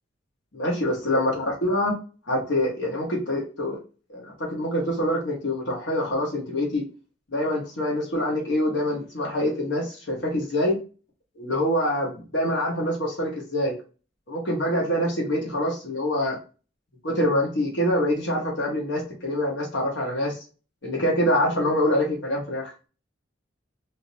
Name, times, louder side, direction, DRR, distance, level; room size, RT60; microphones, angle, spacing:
voice 1, 0.5-1.9 2.3-3.8 4.1-6.8 7.3-10.8 11.4-13.8 14.3-16.4 17.0-20.3 20.8-22.6, left 1 dB, 70° left, -1 dB, 1.3 m, -25 dB
3.6 x 2.8 x 2.7 m, 0.35 s
head